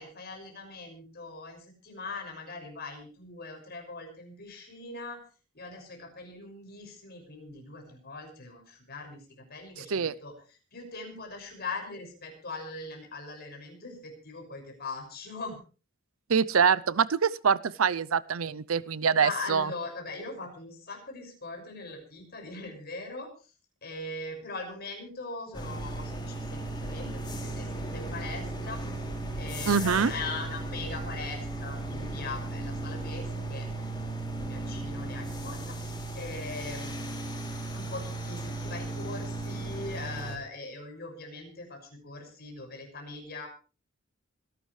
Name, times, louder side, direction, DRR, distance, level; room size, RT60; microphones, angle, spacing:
voice 1, 0.0-5.2 5.5-9.2 9.5-10.3 10.7-15.6 19.1-23.3 23.8-28.8 29.4-33.9 34.4-37.0 37.7-43.5, left 3 dB, 50° left, 3 dB, 6.2 m, -41 dB
voice 2, 9.8-10.1 16.3-19.7 29.7-30.1, right 6 dB, 85° right, 20 dB, 0.6 m, -25 dB
sound 1, 25.5-40.4, right 2 dB, 20° left, 3.1 m, -36 dB
26.0 x 12.0 x 3.3 m, 0.36 s
head